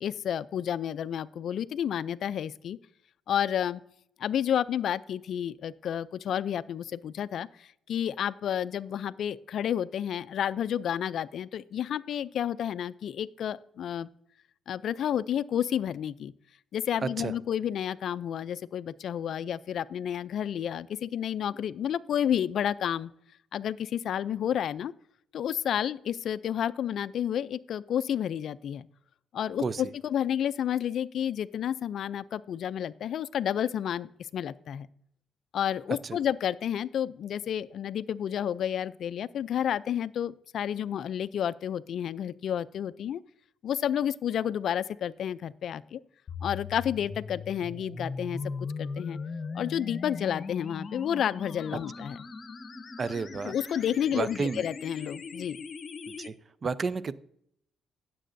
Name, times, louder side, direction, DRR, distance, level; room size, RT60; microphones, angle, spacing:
voice 1, 0.0-2.8 3.3-3.8 4.2-14.1 14.7-16.3 16.7-23.1 23.5-24.9 25.3-28.9 29.3-34.9 35.5-43.2 43.6-46.0 46.4-48.4 48.8-49.2 49.5-52.2 53.4-55.6, left 9 dB, 65° left, 17 dB, 0.4 m, -30 dB
voice 2, 17.0-17.3 29.6-29.8 53.0-53.5 54.1-54.6 56.2-56.3 56.6-57.1, right 4 dB, 40° right, 17 dB, 0.5 m, -31 dB
sound 1, 46.3-56.3, left 4 dB, 45° left, 0.9 m, -39 dB
16.5 x 7.6 x 2.6 m, 0.71 s
cardioid pair, 90°, 0 cm